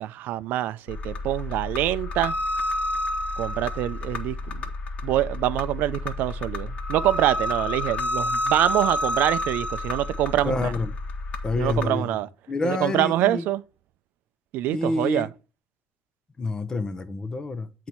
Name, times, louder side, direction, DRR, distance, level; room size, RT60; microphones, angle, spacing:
voice 1, 0.0-2.3 3.4-4.6 5.0-10.7 11.6-12.3 12.6-13.6 14.5-15.3, right 14 dB, 65° right, 0.4 m, -25 dB
sound 1, 0.9-11.8, left 2 dB, 40° left, 1.1 m, -30 dB
voice 2, 10.4-10.9 11.4-12.2 12.5-13.4 14.7-15.3 16.4-17.9, left 3 dB, 20° left, 0.6 m, -28 dB
8.0 x 4.2 x 4.3 m
cardioid pair, 135°, 3 cm